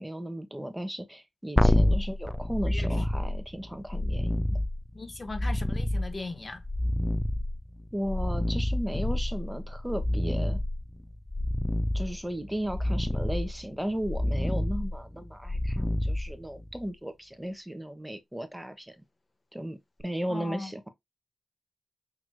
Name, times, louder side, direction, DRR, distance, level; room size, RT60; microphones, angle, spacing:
voice 1, 0.0-4.6 7.9-10.6 11.9-19.0 19.5-20.9, right 1 dB, 5° right, 1.2 m, -35 dB
sound 1, 1.6-16.9 20.0-20.1, left 1 dB, 10° left, 0.4 m, -28 dB
voice 2, 2.7-3.0 4.9-6.6 20.3-20.7, left 3 dB, 40° left, 1.5 m, -38 dB
6.4 x 2.9 x 2.3 m
supercardioid pair, 45°, 0 cm